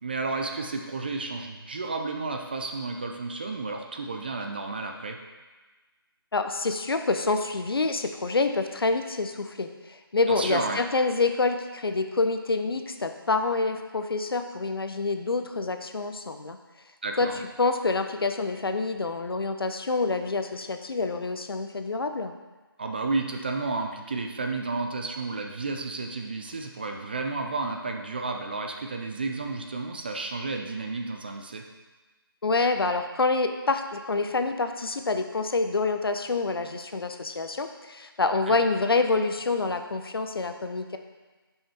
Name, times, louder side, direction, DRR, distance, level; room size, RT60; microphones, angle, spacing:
voice 1, 0.0-5.2 10.3-10.8 17.0-17.3 22.8-31.6 38.5-38.6, right 3 dB, 25° right, 3 dB, 0.4 m, -32 dB
voice 2, 6.3-16.6 17.2-17.3 17.6-22.3 32.4-41.0, left 3 dB, 70° left, 7 dB, 0.7 m, -27 dB
7.1 x 5.5 x 3.4 m, 1.3 s
figure-of-eight pair, 160°, 13 cm